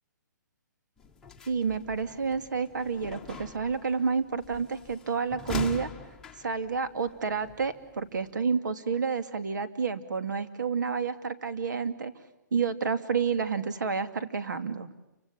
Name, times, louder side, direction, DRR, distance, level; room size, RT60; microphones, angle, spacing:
sound 1, 1.0-8.3, left 5 dB, 5° left, 1.1 m, -44 dB
voice 1, 1.5-5.9 6.4-12.1 12.5-14.9, right 5 dB, 70° right, 11 dB, 2.8 m, -29 dB
30.0 x 25.5 x 7.3 m, 0.95 s
hypercardioid pair, 170°, 10 cm